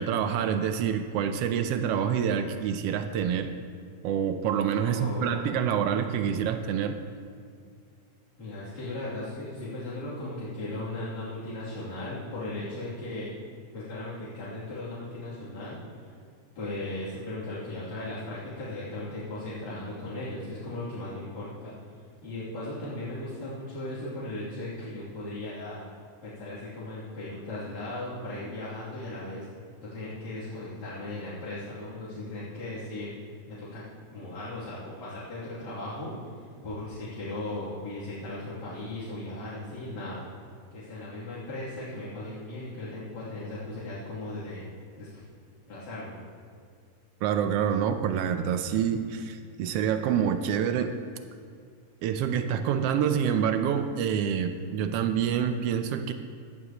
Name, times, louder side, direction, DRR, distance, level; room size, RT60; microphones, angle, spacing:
voice 1, 0.0-3.5 4.0-7.0 47.2-50.9 52.0-56.1, right 8 dB, 80° right, 8 dB, 1.4 m, -27 dB
voice 2, 4.8-6.0 8.4-13.3 13.7-16.1 16.6-21.7 22.2-25.8 26.2-29.5 29.8-33.1 33.5-33.8 34.1-40.2 40.7-44.6 45.0-45.2 45.7-46.2, left 2 dB, 70° left, -12 dB, 4.1 m, -37 dB
16.0 x 13.0 x 3.0 m, 2.2 s
omnidirectional pair, 3.3 m